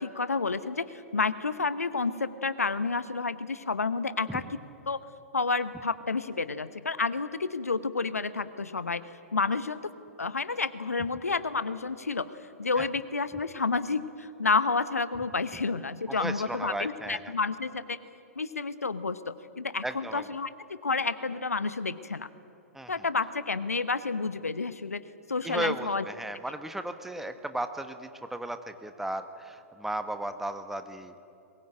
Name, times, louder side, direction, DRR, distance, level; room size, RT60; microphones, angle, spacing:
voice 1, 0.0-4.4 4.9-5.0 5.3-9.9 10.2-12.3 12.6-18.0 18.4-22.3 22.9-25.0 25.3-26.1, left 4 dB, 80° left, 14 dB, 1.0 m, -30 dB
voice 2, 16.1-17.2 19.8-20.2 22.7-22.9 25.4-31.2, right 1 dB, 5° right, 9 dB, 1.1 m, -35 dB
22.0 x 21.0 x 8.9 m, 2.8 s
figure-of-eight pair, 110°, 8 cm